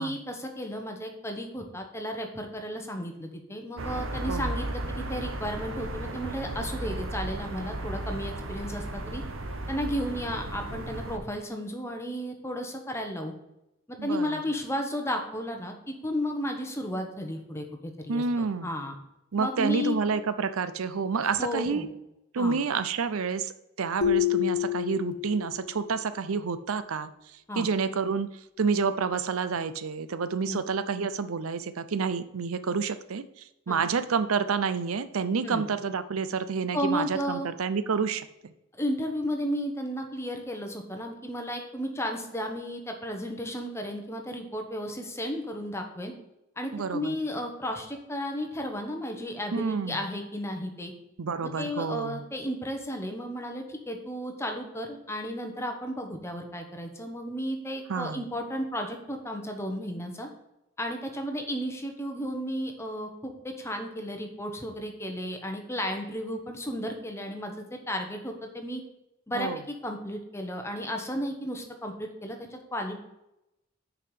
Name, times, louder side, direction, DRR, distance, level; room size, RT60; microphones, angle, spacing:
voice 1, 0.0-9.2 9.7-13.3 13.9-18.9 19.4-19.9 21.2-21.9 22.3-22.6 27.5-27.7 30.4-30.6 33.7-33.8 35.4-35.6 36.7-37.5 38.7-46.1 46.6-50.9 51.6-60.3 60.8-68.8 69.3-73.0, equal, 15° left, 3 dB, 1.1 m, -33 dB
sound 1, 3.8-11.2, right 1 dB, 70° right, 1.0 m, -35 dB
voice 2, 14.0-14.4 18.1-18.7 19.3-21.9 22.3-27.1 27.6-28.3 28.6-38.5 46.7-47.2 49.5-50.0 51.2-52.2 57.9-58.2 69.3-69.6, right 5 dB, 85° right, 13 dB, 0.5 m, -29 dB
sound 2, 24.0-25.7, left 12 dB, 75° left, 0.8 m, -27 dB
6.6 x 4.9 x 6.6 m, 0.89 s
head